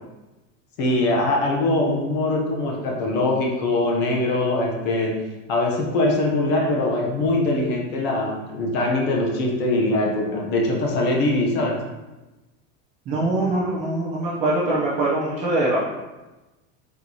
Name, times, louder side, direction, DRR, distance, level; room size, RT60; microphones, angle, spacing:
voice 1, 0.8-5.2 5.5-11.8, left 2 dB, 25° left, -1 dB, 0.6 m, -22 dB
voice 2, 13.1-15.8, right 2 dB, 20° right, -6 dB, 0.4 m, -23 dB
4.6 x 4.3 x 2.7 m, 1.1 s
supercardioid pair, 175°, 39 cm